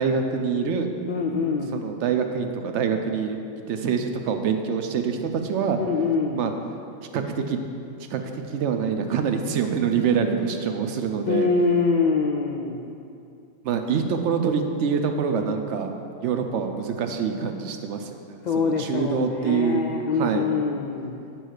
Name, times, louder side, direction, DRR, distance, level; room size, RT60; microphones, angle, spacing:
voice 1, 0.0-0.9 1.7-3.4 3.7-5.8 6.3-6.5 7.1-7.6 8.0-11.5 13.6-19.8 20.1-20.5, right 6 dB, 70° right, 6 dB, 0.8 m, -25 dB
voice 2, 1.1-1.8 5.8-6.5 11.2-12.8 18.4-21.2, left 4 dB, 75° left, 1 dB, 0.4 m, -24 dB
9.0 x 3.0 x 6.4 m, 2.5 s
omnidirectional pair, 1.3 m